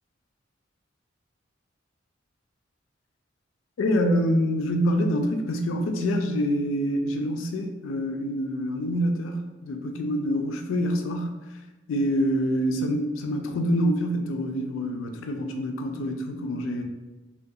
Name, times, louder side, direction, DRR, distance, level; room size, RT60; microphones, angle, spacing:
voice 1, 3.8-11.6 11.9-16.8, equal, 80° left, 4 dB, 0.3 m, -26 dB
2.3 x 2.1 x 2.6 m, 1.1 s
head